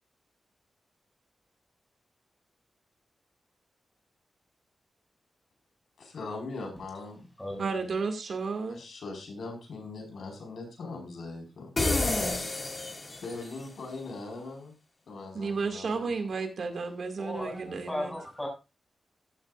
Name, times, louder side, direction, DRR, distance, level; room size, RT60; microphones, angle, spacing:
voice 1, 6.0-7.3 8.7-11.7 13.2-14.7 15.1-16.1, left 3 dB, 85° left, 3 dB, 4.8 m, -40 dB
voice 2, 7.6-8.8 15.3-18.1, right 4 dB, 65° right, 6 dB, 2.2 m, -32 dB
sound 1, 11.8-13.6, left 2 dB, 30° left, 2.1 m, -29 dB
voice 3, 17.2-18.5, left 1 dB, 10° left, 0 dB, 6.2 m, -36 dB
14.0 x 11.5 x 2.5 m, 0.27 s
wide cardioid pair, 150°, 0 cm